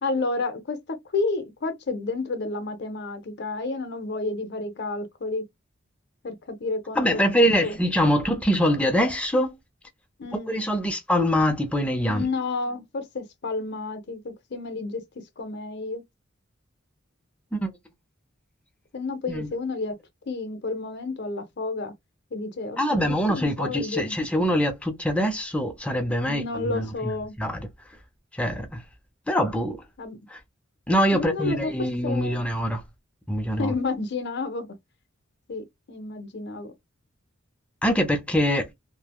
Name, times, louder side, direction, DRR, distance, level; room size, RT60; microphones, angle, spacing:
voice 1, 0.0-5.4 6.2-7.2 7.6-7.8 10.2-10.5 12.1-15.0 15.4-16.0 18.9-20.0 20.3-21.9 22.3-23.0 23.3-24.1 26.3-27.3 30.0-30.2 31.1-31.7 32.0-32.4 33.6-34.8 35.5-36.7, left 3 dB, 60° left, 0.7 m, -30 dB
voice 2, 7.0-9.6 10.5-12.3 17.5-17.7 19.3-19.5 22.8-27.1 27.4-27.7 28.4-28.8 29.3-29.8 30.3-30.4 30.9-32.8 33.3-33.7 37.8-38.7, equal, 5° left, 0.6 m, -24 dB
3.2 x 2.2 x 2.3 m
head